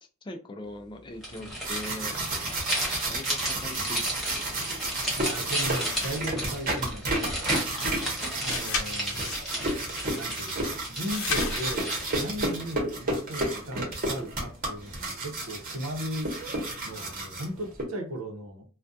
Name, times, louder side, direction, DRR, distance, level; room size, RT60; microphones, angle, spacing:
voice 1, 0.2-2.2 3.1-4.7 7.5-8.1, left 1 dB, 25° left, 0.3 m, -41 dB
sound 1, 1.2-12.4, equal, ahead, 0.9 m, -34 dB
sound 2, 1.4-17.8, right 2 dB, 40° right, 0.8 m, -31 dB
voice 2, 5.2-7.9 8.4-9.3 10.1-16.3 16.8-18.6, equal, 85° right, 0.7 m, -37 dB
sound 3, 5.8-6.3 8.5-9.5 11.1-11.8, left 4 dB, 85° left, 0.7 m, -33 dB
2.3 x 2.2 x 2.6 m
head